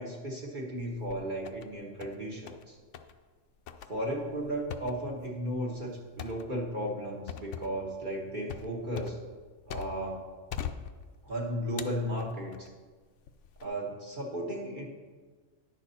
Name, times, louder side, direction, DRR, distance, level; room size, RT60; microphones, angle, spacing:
voice 1, 0.0-2.8 3.9-9.2 9.7-10.2 11.2-12.7 13.6-14.9, equal, 40° right, -2 dB, 1.2 m, -35 dB
sound 1, 0.8-1.7 2.0-2.7 2.9-3.2 3.7-10.2 10.5-11.3 11.8-12.7 13.3-13.7, left 8 dB, 70° left, 0.9 m, -42 dB
10.5 x 6.4 x 4.2 m, 1.4 s
omnidirectional pair, 1.3 m